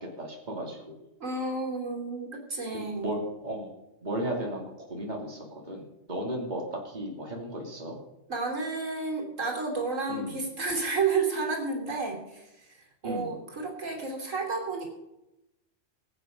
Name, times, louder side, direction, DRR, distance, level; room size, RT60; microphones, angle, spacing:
voice 1, 0.0-1.1 3.0-3.7 4.0-8.0 10.1-10.3 13.0-13.3, right 1 dB, 35° right, -1 dB, 2.9 m, -35 dB
voice 2, 1.2-3.2 8.3-14.9, right 4 dB, 80° right, 1 dB, 3.3 m, -31 dB
21.5 x 8.4 x 5.3 m, 0.94 s
omnidirectional pair, 1.3 m